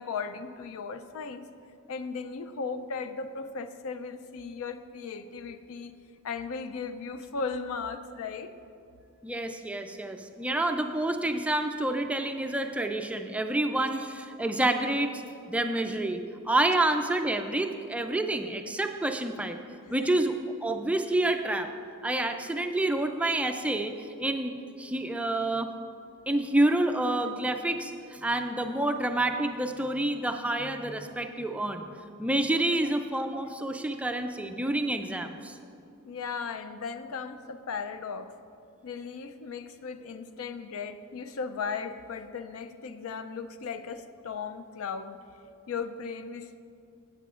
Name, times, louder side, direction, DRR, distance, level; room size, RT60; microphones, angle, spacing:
voice 1, 0.0-1.4 1.9-5.9 6.2-8.5 19.8-20.2 36.1-38.3 38.8-45.2 45.7-46.6, left 5 dB, 70° left, 10 dB, 0.4 m, -36 dB
voice 2, 9.2-15.2 15.5-19.6 19.9-20.3 20.6-21.7 22.0-23.9 24.2-25.7 26.3-31.9 32.2-35.6, right 1 dB, 5° right, 6 dB, 0.3 m, -28 dB
15.0 x 8.2 x 2.4 m, 2.5 s
head